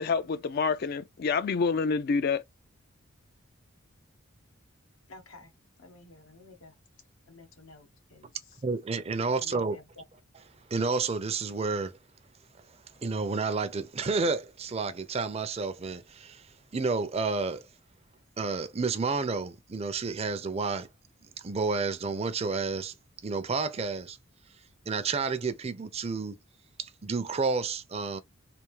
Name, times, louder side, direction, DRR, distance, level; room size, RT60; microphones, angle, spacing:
voice 1, 0.0-2.4, left 5 dB, 50° left, 0.4 m, -27 dB
voice 2, 5.1-5.5 5.8-6.7 7.2-8.6 9.4-10.0, left 3 dB, 80° left, 0.8 m, -52 dB
voice 3, 8.6-9.8 10.7-11.9 13.0-16.4 16.7-17.6 18.4-20.9 21.4-22.9 23.2-24.2 24.9-26.4 26.8-28.2, right 4 dB, 30° right, 0.5 m, -30 dB
3.4 x 2.6 x 3.1 m
head